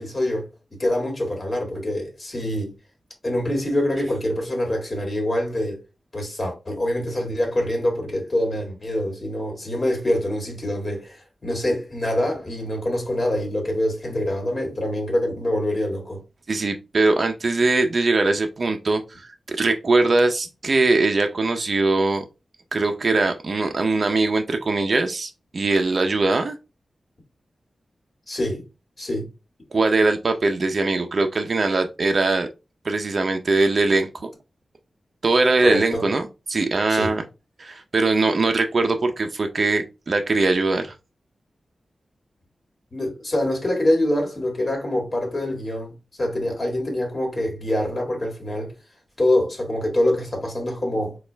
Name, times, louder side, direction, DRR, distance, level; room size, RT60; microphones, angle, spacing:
voice 1, 0.0-2.7 3.2-5.8 6.1-16.2 28.3-28.7 29.0-29.3 35.6-36.0 36.9-37.1 42.9-45.9 46.2-48.7 49.2-51.2, left 1 dB, 35° left, 1.9 m, -25 dB
voice 2, 16.5-22.2 22.7-26.6 29.7-32.5 32.8-34.3 35.2-37.2 37.6-40.9, right 3 dB, 55° right, 0.5 m, -21 dB
4.2 x 2.4 x 3.3 m
wide cardioid pair, 70°, 0 cm